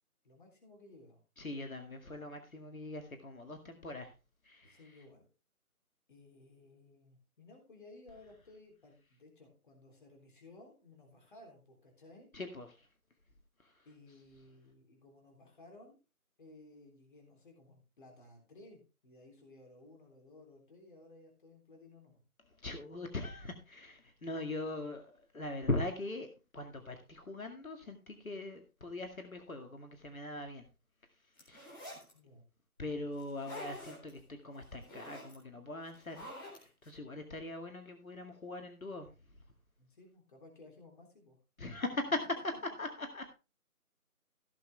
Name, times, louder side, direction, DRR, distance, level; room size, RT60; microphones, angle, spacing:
voice 1, 0.2-1.2 4.6-5.3 6.1-12.3 13.9-16.0 16.4-22.2 32.1-32.5 39.8-41.4, left 2 dB, 35° left, 2 dB, 3.5 m, -57 dB
voice 2, 1.4-4.1 4.4-4.8 12.3-12.9 13.6-13.7 22.6-26.3 26.5-30.6 31.4-31.8 32.8-36.3 36.6-39.1 41.6-42.2 42.8-43.3, left 2 dB, 65° left, 5 dB, 2.1 m, -41 dB
sound 1, 31.4-32.1 33.2-34.1 34.5-35.4 35.9-36.9, left 1 dB, 15° left, 3.8 m, -47 dB
16.0 x 7.4 x 3.4 m, 0.30 s
figure-of-eight pair, 160°, 45 cm